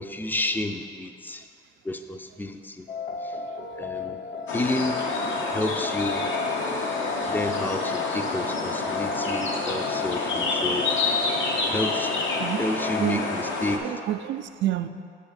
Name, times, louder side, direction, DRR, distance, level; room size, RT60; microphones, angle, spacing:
voice 1, 0.0-1.4 1.8-2.9 3.2-3.3 3.8-4.2 4.5-5.0 5.5-6.3 7.3-11.0 11.7-12.3 12.6-13.8, left 2 dB, 10° left, 7 dB, 0.4 m, -30 dB
sound 1, 2.9-13.2, left 4 dB, 50° left, 0.7 m, -34 dB
sound 2, 4.5-13.8, left 3 dB, 75° left, 0.9 m, -28 dB
voice 2, 13.8-14.9, right 13 dB, 70° right, 10 dB, 0.4 m, -28 dB
6.9 x 4.1 x 6.4 m, 2.3 s
cardioid pair, 90°, 20 cm